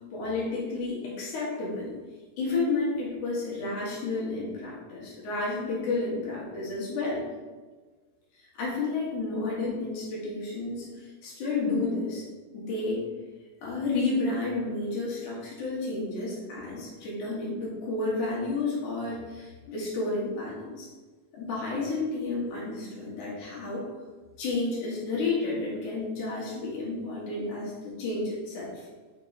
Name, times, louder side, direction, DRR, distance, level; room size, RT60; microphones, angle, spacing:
voice 1, 0.0-1.9 2.4-7.2 8.5-12.2 12.5-13.0 13.6-20.9 21.3-23.9 24.4-28.9, left 3 dB, 75° left, -5 dB, 3.0 m, -31 dB
6.6 x 3.6 x 4.1 m, 1.3 s
omnidirectional pair, 3.5 m